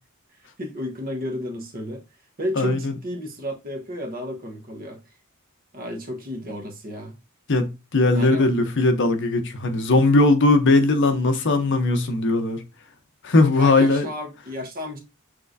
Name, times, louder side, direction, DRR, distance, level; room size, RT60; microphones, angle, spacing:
voice 1, 0.6-2.0 2.4-5.0 5.7-7.2 8.1-8.5 13.5-15.0, left 1 dB, 40° right, 1.1 m, -32 dB
voice 2, 2.6-2.9 7.5-12.6 13.2-14.1, left 2 dB, 55° left, 0.7 m, -19 dB
6.2 x 3.3 x 2.6 m
head